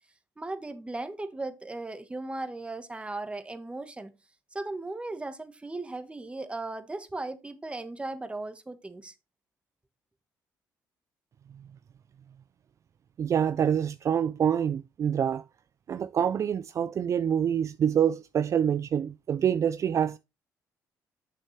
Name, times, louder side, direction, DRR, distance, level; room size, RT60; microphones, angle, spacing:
voice 1, 0.4-4.1 4.5-9.1, right 2 dB, 15° right, 1.3 m, -37 dB
voice 2, 13.2-15.4 15.9-20.2, right 8 dB, 45° right, 0.4 m, -26 dB
8.3 x 6.4 x 3.2 m
cardioid pair, 80°, 7 cm